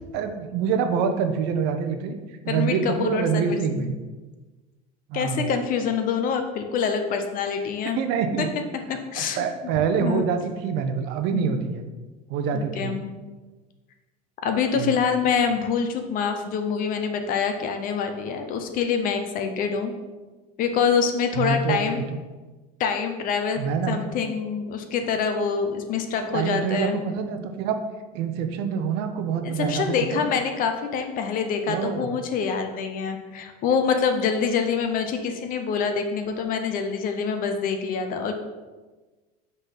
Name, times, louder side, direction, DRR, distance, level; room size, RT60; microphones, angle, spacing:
voice 1, 0.1-2.2 2.4-3.9 5.1-5.5 8.0-8.5 9.2-11.8 12.3-13.0 14.8-15.0 21.4-22.0 23.6-24.0 26.3-27.8 28.1-30.3 31.7-32.1, right 6 dB, 60° right, 7 dB, 0.8 m, -26 dB
voice 2, 2.5-3.9 5.1-8.0 8.4-8.5 8.9-9.5 10.0-10.3 11.3-11.6 12.5-13.1 14.4-19.9 20.6-22.0 22.8-23.6 23.9-27.0 29.4-38.3, left 6 dB, 45° left, 6 dB, 0.9 m, -26 dB
5.5 x 4.0 x 5.8 m, 1.3 s
supercardioid pair, 120°, 19 cm